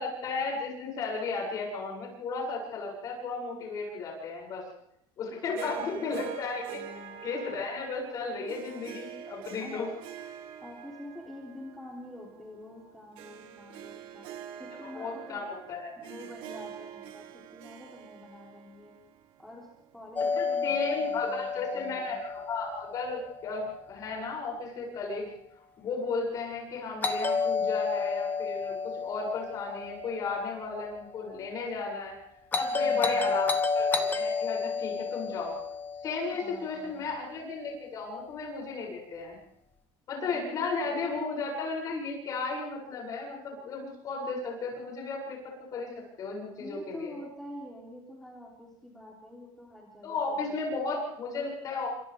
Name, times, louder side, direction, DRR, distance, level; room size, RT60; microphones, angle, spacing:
voice 1, 0.0-4.6 5.2-6.6 7.2-9.9 14.8-15.9 20.4-25.3 25.8-32.1 32.6-35.6 36.0-39.4 40.1-47.1 50.0-51.9, left 4 dB, 40° left, -1 dB, 7.6 m, -34 dB
voice 2, 5.3-6.3 6.7-7.3 9.6-9.9 10.6-14.3 14.6-15.4 16.0-19.0 19.4-19.7 19.9-22.2 32.6-33.3 36.3-37.0 40.2-41.1 46.6-50.9, left 1 dB, 5° left, -4 dB, 3.6 m, -47 dB
Harp, 5.6-19.9, right 9 dB, 70° right, 2.1 m, -45 dB
Doorbell, 20.2-24.1 27.0-31.2 32.5-36.9, left 4 dB, 20° left, 1.1 m, -31 dB
29.5 x 26.0 x 3.7 m, 0.75 s
cardioid pair, 170°, 9 cm